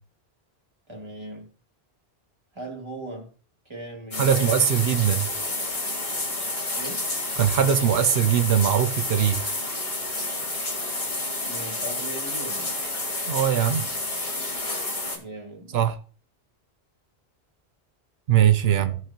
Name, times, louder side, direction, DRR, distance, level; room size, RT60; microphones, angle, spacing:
voice 1, 0.9-1.5 2.5-3.3 3.6-4.7 6.7-7.1 11.5-12.8 15.1-15.8 18.7-18.9, right 2 dB, 25° right, 2.4 m, -38 dB
sound 1, 4.1-15.2, left 2 dB, 75° left, 2.3 m, -30 dB
voice 2, 4.2-5.3 7.4-9.6 13.3-13.9 15.7-16.0 18.3-18.9, right 9 dB, 80° right, 0.9 m, -21 dB
16.0 x 5.6 x 2.9 m
omnidirectional pair, 1.0 m